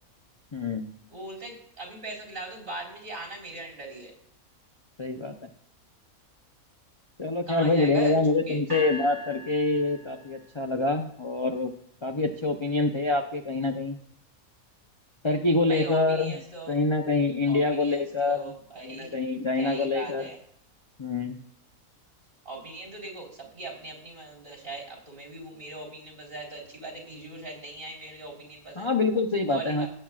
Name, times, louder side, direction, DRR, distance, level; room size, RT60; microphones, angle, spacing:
voice 1, 0.5-0.9 5.0-5.5 7.2-11.7 12.0-14.0 15.2-16.4 16.7-20.3 21.0-21.4 28.8-29.9, left 3 dB, 35° left, 4 dB, 0.4 m, -26 dB
voice 2, 1.1-4.1 7.5-8.2 8.5-8.6 15.7-16.7 17.5-19.1 19.6-20.4 22.4-28.9 29.5-29.9, right 2 dB, 40° right, 1 dB, 4.2 m, -40 dB
sound 1, 8.7-10.8, left 1 dB, 15° right, 3.6 m, -40 dB
17.5 x 8.9 x 2.4 m, 0.68 s
omnidirectional pair, 1.5 m